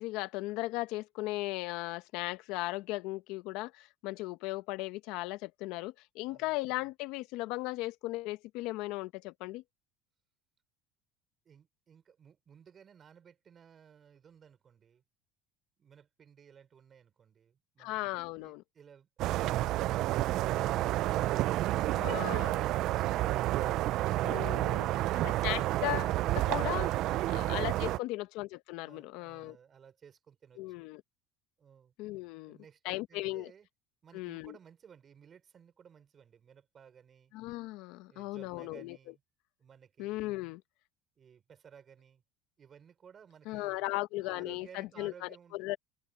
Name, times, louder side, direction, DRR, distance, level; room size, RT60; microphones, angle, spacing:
voice 1, 0.0-9.6 17.8-18.6 22.0-22.6 24.2-24.9 25.2-26.9 27.3-29.6 30.6-31.0 32.0-32.6 32.8-33.5 34.1-34.6 37.3-39.0 40.0-40.6 43.5-45.8, left 19 dB, 70° left, 1.2 m, -37 dB
voice 2, 11.4-15.0 15.8-18.1 18.4-21.3 28.8-30.9 31.6-31.9 32.5-33.7 34.0-37.3 38.1-39.2 39.6-40.5 41.2-42.2 42.6-43.9 44.2-45.6, right 7 dB, 35° right, 5.7 m, -57 dB
sound 1, 19.2-28.0, right 15 dB, 60° right, 0.5 m, -30 dB
supercardioid pair, 105°, 0 cm